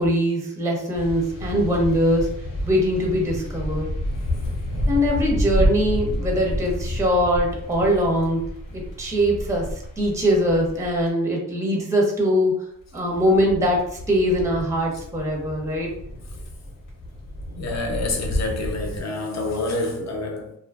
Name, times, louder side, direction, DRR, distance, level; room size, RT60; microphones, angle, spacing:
voice 1, 0.0-2.3 2.6-3.9 4.9-8.4 8.7-12.5 12.9-15.9, equal, 10° right, 0.5 m, -22 dB
sound 1, 0.9-11.1 12.8-19.0, equal, 85° left, 0.8 m, -30 dB
voice 2, 17.6-20.6, left 2 dB, 60° left, 0.6 m, -27 dB
2.5 x 2.4 x 2.3 m
wide cardioid pair, 120°, 31 cm